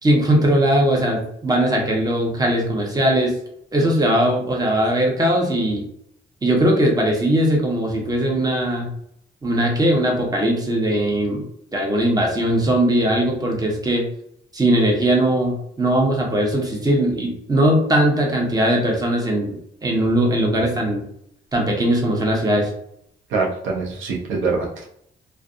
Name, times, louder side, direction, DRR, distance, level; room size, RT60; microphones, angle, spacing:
voice 1, 0.0-3.3 3.7-5.8 6.4-8.9 9.4-11.4 11.7-14.1 14.5-21.0 21.5-22.7, right 1 dB, 20° right, -1 dB, 0.8 m, -19 dB
voice 2, 23.3-24.9, right 4 dB, 80° right, -2 dB, 0.7 m, -24 dB
2.5 x 2.2 x 2.5 m, 0.71 s
cardioid pair, 70°, 20 cm